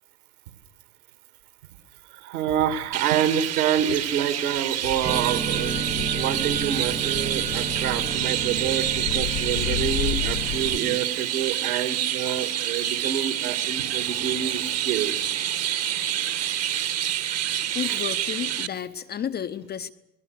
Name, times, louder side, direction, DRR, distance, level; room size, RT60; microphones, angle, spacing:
voice 1, 2.1-15.1 17.8-18.0, right 9 dB, 60° right, 9 dB, 2.5 m, -27 dB
Chirp tweet, 2.9-18.7, right 11 dB, 30° right, 1.4 m, -27 dB
sound 1, 4.8-10.8, left 15 dB, 50° left, 1.3 m, -33 dB
sound 2, 5.0-11.0, right 7 dB, 10° right, 0.8 m, -33 dB
voice 2, 17.4-19.9, left 8 dB, 20° left, 10 dB, 0.8 m, -32 dB
29.0 x 20.0 x 6.6 m, 0.90 s
figure-of-eight pair, 90°, 50 cm